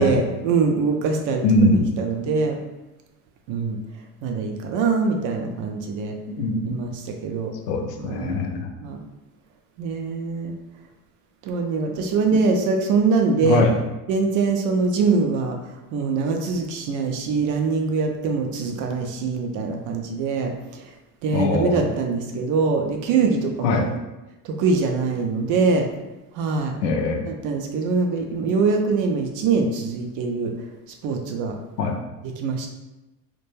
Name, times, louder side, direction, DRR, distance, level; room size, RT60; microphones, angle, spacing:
voice 1, 0.0-1.4 2.0-2.6 3.5-3.8 4.2-6.2 6.6-7.5 8.0-8.4 8.8-9.0 9.8-10.5 11.4-13.7 14.1-15.6 15.9-20.5 21.2-24.0 24.4-25.9 26.3-26.7 27.3-30.5 31.0-31.6 32.2-32.7, right 4 dB, 40° right, 3 dB, 0.4 m, -23 dB
voice 2, 1.4-1.9 6.3-6.7 7.7-8.7 12.3-12.4 13.4-13.7 21.3-21.9 23.6-23.8 26.8-27.2 31.8-32.0, left 2 dB, 80° left, 3 dB, 0.6 m, -21 dB
2.2 x 2.2 x 3.1 m, 1.0 s
hypercardioid pair, 80°, 48 cm